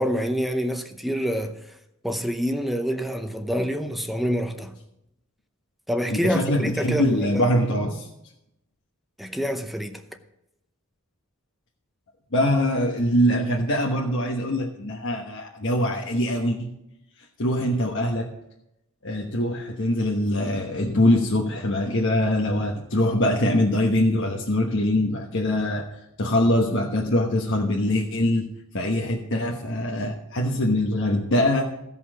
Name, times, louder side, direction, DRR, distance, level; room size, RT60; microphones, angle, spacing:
voice 1, 0.0-1.7 2.0-4.7 5.9-7.4 9.2-10.0, equal, ahead, 0.7 m, -27 dB
voice 2, 6.1-8.1 12.3-16.7 17.4-18.3 19.0-25.9 26.2-28.5 28.7-31.6, left 1 dB, 60° left, 1.2 m, -23 dB
15.5 x 5.6 x 6.2 m
head